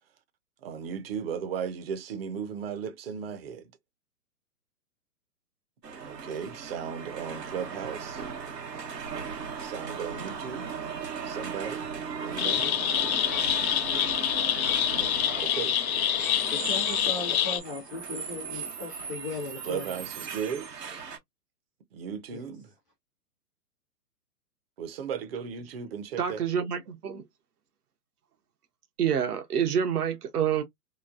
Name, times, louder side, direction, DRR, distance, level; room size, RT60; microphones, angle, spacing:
voice 1, 0.6-3.7 6.0-8.2 9.6-10.8 11.2-11.9 12.2-12.8 15.4-16.1 19.6-20.7 21.9-22.7 24.8-26.4, right 7 dB, 40° right, 0.6 m, -36 dB
sound 1, 5.8-21.2, right 6 dB, 90° right, 1.1 m, -38 dB
sound 2, 12.4-17.6, left 10 dB, 60° left, 0.7 m, -26 dB
voice 2, 16.5-20.1 22.3-22.4, left 2 dB, 15° left, 0.4 m, -37 dB
voice 3, 26.2-27.2 29.0-30.6, right 8 dB, 70° right, 0.9 m, -27 dB
3.1 x 2.2 x 2.4 m
hypercardioid pair, 135°, 48 cm